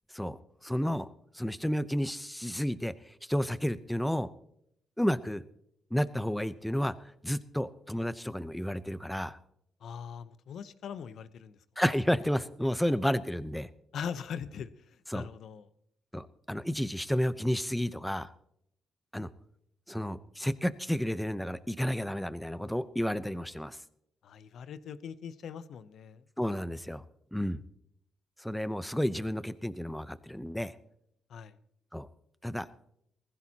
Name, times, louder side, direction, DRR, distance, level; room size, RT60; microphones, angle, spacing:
voice 1, 0.1-4.3 5.0-5.4 5.9-6.9 7.2-9.4 11.8-13.7 15.1-15.3 16.1-18.3 19.1-19.3 19.9-23.8 26.4-27.0 27.3-27.6 28.4-30.7 31.9-32.1 32.4-32.7, equal, 5° left, 14 dB, 0.8 m, -31 dB
voice 2, 9.8-11.6 13.9-15.7 24.2-26.2 31.3-31.5, left 7 dB, 65° left, 14 dB, 0.8 m, -41 dB
20.0 x 15.5 x 2.9 m, 0.73 s
cardioid pair, 90°, 0 cm